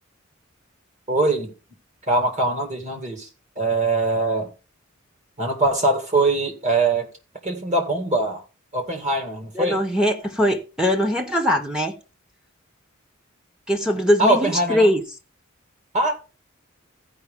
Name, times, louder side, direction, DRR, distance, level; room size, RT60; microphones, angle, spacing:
voice 1, 1.1-1.5 2.1-3.3 3.6-4.5 5.4-7.1 7.4-8.4 8.7-9.8 14.2-14.9 15.9-16.1, right 2 dB, 35° right, 2.1 m, -22 dB
voice 2, 9.5-12.0 13.7-15.0, equal, 5° right, 0.9 m, -21 dB
15.5 x 5.2 x 3.6 m
head